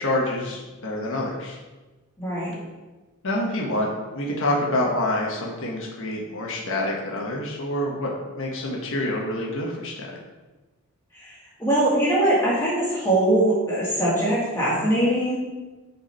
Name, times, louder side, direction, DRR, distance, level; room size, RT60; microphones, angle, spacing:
voice 1, 0.0-1.6 3.2-3.9 4.1-10.1, left 1 dB, 65° left, -2 dB, 1.3 m, -27 dB
voice 2, 2.2-2.6 11.1-11.3 11.6-15.4, right 1 dB, 10° left, -9 dB, 2.0 m, -22 dB
8.0 x 4.8 x 4.4 m, 1.2 s
head